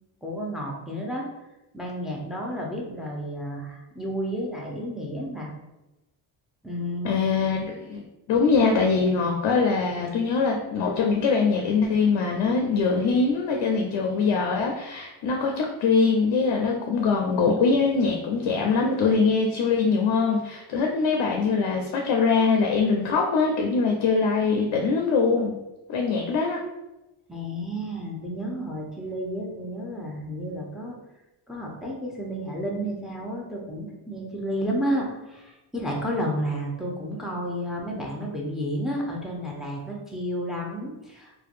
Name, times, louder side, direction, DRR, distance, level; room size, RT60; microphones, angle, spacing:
voice 1, 0.2-1.3 1.7-5.5 6.6-7.1 27.3-31.0 31.5-41.4, equal, ahead, -2 dB, 0.6 m, -31 dB
voice 2, 7.0-8.0 8.3-25.5 25.9-26.6, left 4 dB, 65° left, 1 dB, 0.5 m, -23 dB
2.5 x 2.2 x 2.4 m, 0.98 s
supercardioid pair, 50°, 48 cm